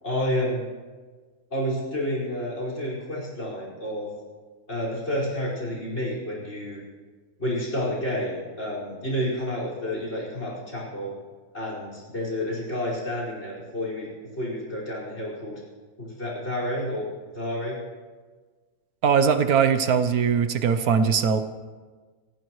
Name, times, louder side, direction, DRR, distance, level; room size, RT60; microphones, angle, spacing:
voice 1, 0.0-0.6 1.5-4.1 4.7-6.8 7.4-11.1 11.5-14.1 14.3-15.6 16.0-17.1 17.3-17.8, equal, 45° left, -3 dB, 5.6 m, -30 dB
voice 2, 19.0-21.4, right 6 dB, 75° right, 9 dB, 1.3 m, -21 dB
29.5 x 14.5 x 3.1 m, 1.4 s
omnidirectional pair, 1.6 m